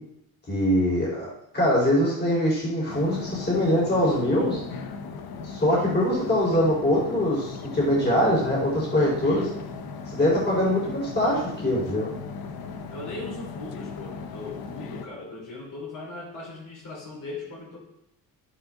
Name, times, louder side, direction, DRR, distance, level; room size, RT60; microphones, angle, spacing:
voice 1, 0.5-1.3 1.5-4.6 5.4-9.5 10.1-12.1, left 1 dB, 30° left, -5 dB, 4.6 m, -23 dB
sound 1, 2.9-15.1, left 5 dB, 75° left, 1.1 m, -38 dB
voice 2, 12.9-17.8, left 3 dB, 55° left, -3 dB, 5.0 m, -38 dB
12.0 x 11.0 x 3.9 m, 0.81 s
cardioid pair, 115°, 37 cm